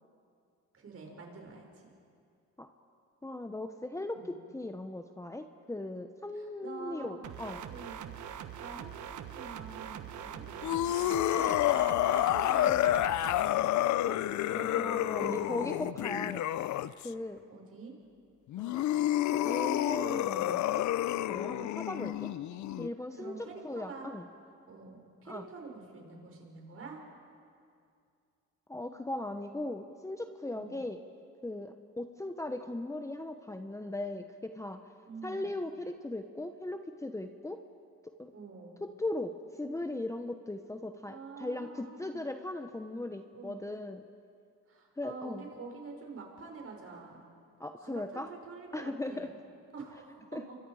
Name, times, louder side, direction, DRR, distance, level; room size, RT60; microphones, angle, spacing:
voice 1, 0.7-1.9 4.1-4.3 6.3-7.3 7.7-8.1 8.6-10.5 10.8-13.4 15.2-15.9 16.9-17.0 17.5-17.9 22.1-22.2 23.1-24.1 24.7-27.0 30.5-30.8 35.1-35.5 38.3-38.9 41.1-42.3 43.3-43.7 44.7-47.2 47.8-49.3 49.7-50.5, right 4 dB, 50° right, 1 dB, 5.7 m, -47 dB
voice 2, 3.2-7.6 14.1-14.2 14.5-16.7 17.0-17.4 18.6-18.8 19.3-20.9 21.3-22.3 22.8-23.4 23.6-24.2 25.3-25.5 28.7-31.0 31.4-34.8 35.2-37.6 38.0-38.3 38.8-44.0 45.0-45.5 47.6-48.3 48.7-49.3 50.3-50.4, left 2 dB, 10° left, 6 dB, 1.0 m, -38 dB
sound 1, 7.2-13.4, right 9 dB, 75° right, 1.2 m, -43 dB
sound 2, 10.6-17.1 18.5-22.9, left 13 dB, 70° left, 0.6 m, -29 dB
29.5 x 24.0 x 5.0 m, 2.4 s
cardioid pair, 90°, 30 cm